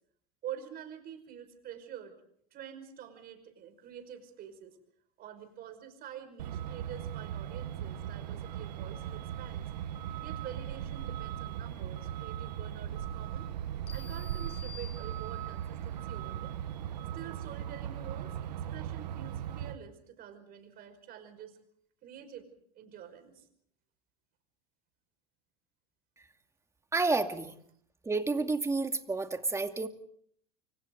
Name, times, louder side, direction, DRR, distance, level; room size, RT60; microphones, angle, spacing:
voice 1, 0.4-2.2 2.5-4.8 5.2-9.7 10.2-13.5 13.9-16.5 17.1-18.4 18.7-21.6 22.0-22.5 22.8-23.5, right 9 dB, 50° right, 7 dB, 5.5 m, -47 dB
Truck, 6.4-19.8, right 10 dB, 85° right, 1.5 m, -38 dB
sound 1, 13.9-15.7, left 3 dB, 30° left, 7.3 m, -51 dB
voice 2, 26.9-27.6 28.0-29.9, right 3 dB, 15° right, 6 dB, 2.3 m, -30 dB
29.5 x 24.5 x 3.9 m, 0.66 s
hypercardioid pair, 95°, 21 cm